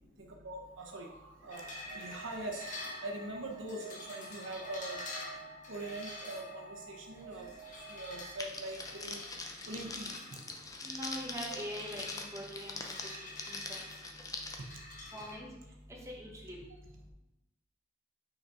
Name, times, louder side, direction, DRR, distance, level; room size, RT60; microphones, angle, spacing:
voice 1, 0.2-1.7 1.9-5.0 5.7-7.5 7.9-10.4 11.5-11.6, right 2 dB, 80° right, 1 dB, 0.9 m, -43 dB
sound 1, 1.5-15.3, left 2 dB, 40° left, 1.1 m, -48 dB
Alarm, 1.6-8.6, right 5 dB, 40° right, 0.4 m, -52 dB
Crackle, 8.4-14.5, left 3 dB, 20° left, 0.5 m, -43 dB
voice 2, 10.8-12.8 13.2-13.8 15.1-15.5 16.1-16.6, equal, 15° right, -3 dB, 1.1 m, -43 dB
5.3 x 4.1 x 4.4 m, 0.97 s
head